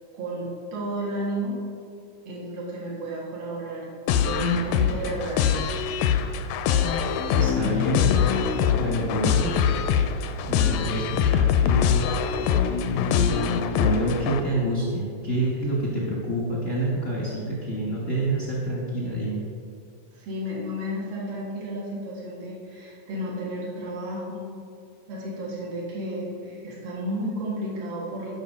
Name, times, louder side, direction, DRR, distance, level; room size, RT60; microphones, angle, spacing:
voice 1, 0.1-1.6 2.3-3.9 4.2-5.6 20.1-24.5 25.1-28.3, right 1 dB, 85° right, -6 dB, 3.7 m, -32 dB
sound 1, 4.1-14.4, left 7 dB, 80° left, 2.2 m, -23 dB
voice 2, 7.3-8.1 8.7-9.5 10.4-12.0 12.9-13.4 13.8-19.4, right 1 dB, 50° left, -4 dB, 0.9 m, -27 dB
12.0 x 5.7 x 5.3 m, 2.3 s
omnidirectional pair, 4.1 m